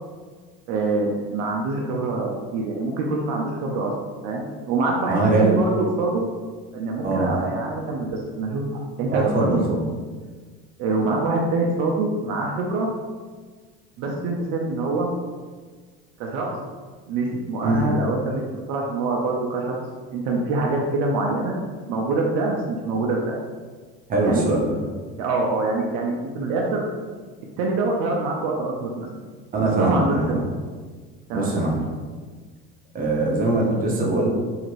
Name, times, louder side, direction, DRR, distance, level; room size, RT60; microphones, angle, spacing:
voice 1, 0.7-3.9 4.2-6.3 6.7-8.6 9.0-9.7 10.8-12.9 14.0-15.1 16.2-16.6 17.1-18.4 18.7-19.8 20.1-21.6 21.9-23.3 24.2-24.6 25.2-26.9 27.6-29.2 29.6-30.4 31.3-31.5, right 3 dB, 65° right, -1 dB, 0.5 m, -25 dB
voice 2, 5.1-5.5 7.0-7.3 9.1-9.8 17.6-17.9 24.1-24.8 29.5-30.4 31.3-31.8 32.9-34.3, right 2 dB, 30° right, -2 dB, 0.8 m, -22 dB
2.8 x 2.5 x 3.1 m, 1.4 s
supercardioid pair, 110°, 29 cm